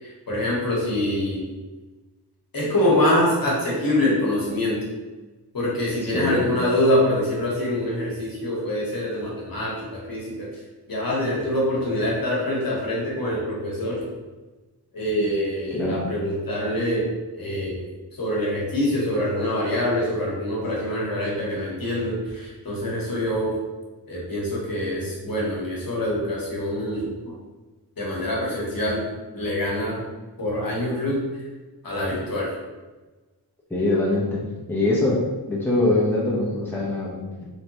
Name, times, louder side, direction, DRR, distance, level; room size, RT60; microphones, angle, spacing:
voice 1, 0.3-1.4 2.5-4.8 5.5-10.5 10.9-14.0 14.9-17.1 17.4-17.8 18.2-23.5 24.1-27.3 28.0-29.0 29.3-30.0 30.4-31.2 31.8-32.5, left 1 dB, 55° left, -4 dB, 1.1 m, -25 dB
voice 2, 6.1-6.5 15.7-16.0 33.7-34.4 34.7-35.2 35.5-37.4, left 2 dB, 5° left, -6 dB, 0.7 m, -23 dB
3.3 x 2.8 x 2.8 m, 1.2 s
wide cardioid pair, 110°, 41 cm